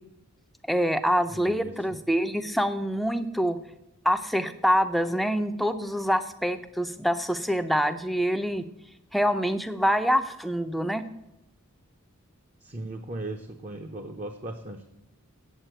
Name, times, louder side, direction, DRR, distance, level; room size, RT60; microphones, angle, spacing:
voice 1, 0.7-3.6 4.0-8.7 9.1-11.0, equal, ahead, 8 dB, 0.5 m, -25 dB
voice 2, 1.3-1.7 12.6-14.9, right 2 dB, 35° right, 5 dB, 0.7 m, -37 dB
8.3 x 8.2 x 9.1 m, 0.86 s
head